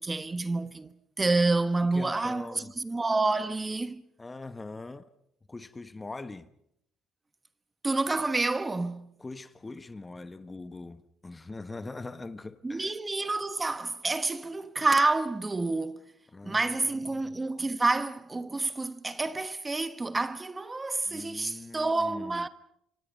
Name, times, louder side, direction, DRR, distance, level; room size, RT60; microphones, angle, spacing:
voice 1, 0.0-4.0 7.8-9.1 12.6-16.1 16.4-22.5, right 3 dB, 20° right, 1.2 m, -28 dB
voice 2, 1.9-2.7 4.2-5.1 5.5-6.5 9.2-12.9 16.3-17.3 21.1-22.5, left 3 dB, 20° left, 1.3 m, -42 dB
27.5 x 25.0 x 5.4 m
supercardioid pair, 80°, 0 cm